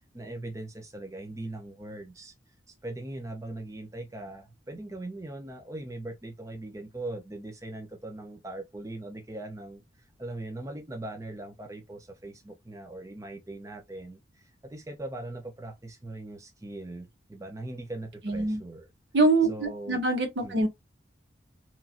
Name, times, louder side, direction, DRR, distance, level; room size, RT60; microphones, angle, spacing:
voice 1, 0.1-2.3 2.7-18.9 19.5-20.0 20.4-20.6, right 2 dB, 15° right, 0.5 m, -40 dB
voice 2, 18.2-18.6 19.1-20.7, right 2 dB, 60° right, 0.9 m, -24 dB
3.0 x 2.5 x 2.4 m
head